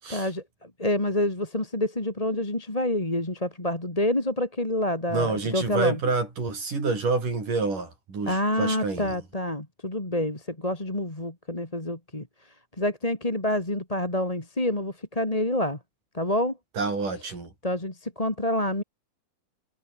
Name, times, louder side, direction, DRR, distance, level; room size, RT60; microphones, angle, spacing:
voice 1, 0.1-6.0 8.3-12.3 12.8-15.8 16.1-16.6 17.6-18.8, left 1 dB, 10° left, 2.9 m, -27 dB
voice 2, 5.1-9.2 16.8-17.5, right 4 dB, 90° right, 9.0 m, -28 dB
omnidirectional pair, 3.6 m